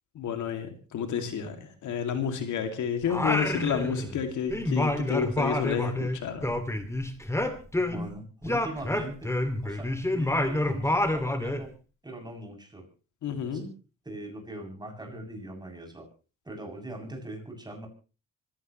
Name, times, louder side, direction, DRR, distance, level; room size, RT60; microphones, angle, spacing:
voice 1, 0.1-6.5 13.2-13.7, left 7 dB, 75° left, 6 dB, 2.6 m, -30 dB
Singing, 3.1-4.2 4.5-8.1 8.4-11.7, left 1 dB, 10° left, 2.4 m, -28 dB
voice 2, 7.8-11.7 12.0-12.9 13.5-13.7 14.0-16.1 16.4-17.9, right 1 dB, 15° right, 2 dB, 7.8 m, -41 dB
25.0 x 16.5 x 3.2 m, 0.35 s
cardioid pair, 90°, 30 cm